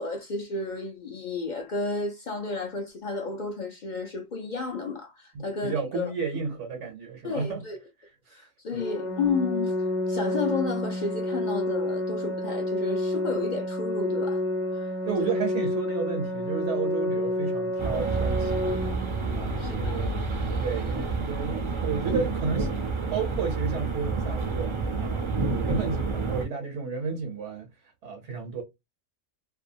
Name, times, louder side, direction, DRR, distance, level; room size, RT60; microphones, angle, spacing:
voice 1, 0.0-6.1 7.2-7.8 8.3-9.7 10.1-14.4 14.7-14.9 15.2-15.3 19.6-20.1, left 4 dB, 50° left, 0.5 m, -32 dB
voice 2, 5.3-7.6 8.3-8.5 15.0-18.7 19.3-22.7 23.1-27.7 28.0-28.6, right 5 dB, 70° right, 0.9 m, -32 dB
Organ, 8.8-19.8, left 1 dB, 65° left, 1.0 m, -29 dB
sound 1, 17.8-26.5, right 4 dB, 40° right, 0.4 m, -29 dB
2.7 x 2.2 x 2.5 m
omnidirectional pair, 1.3 m